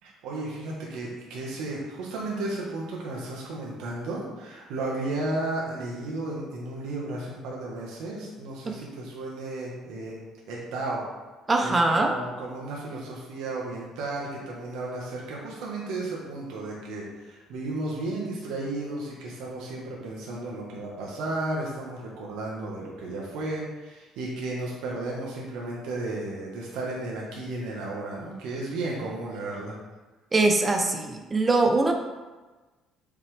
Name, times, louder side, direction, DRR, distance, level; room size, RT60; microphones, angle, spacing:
voice 1, 0.0-10.2 10.5-11.0 11.6-29.7, right 2 dB, 85° right, -3 dB, 1.5 m, -34 dB
voice 2, 11.5-12.1 30.3-31.9, right 2 dB, 25° right, 4 dB, 0.9 m, -22 dB
7.6 x 5.8 x 3.5 m, 1.2 s
cardioid pair, 95°, 0 cm